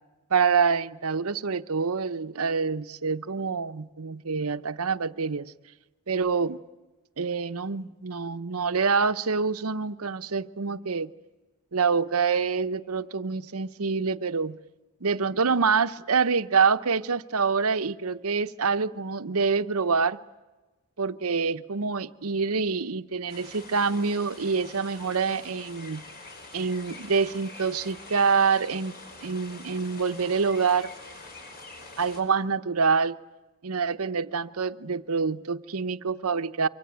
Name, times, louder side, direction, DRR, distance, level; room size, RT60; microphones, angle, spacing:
voice 1, 0.3-5.5 6.1-6.6 7.2-11.1 11.7-14.6 15.0-20.2 21.0-26.0 26.5-28.9 29.2-30.9 32.0-33.2 33.6-36.7, right 5 dB, 70° right, 0.8 m, -26 dB
sound 1, 23.3-32.2, left 2 dB, 45° left, 5.3 m, -45 dB
25.0 x 24.5 x 9.1 m
head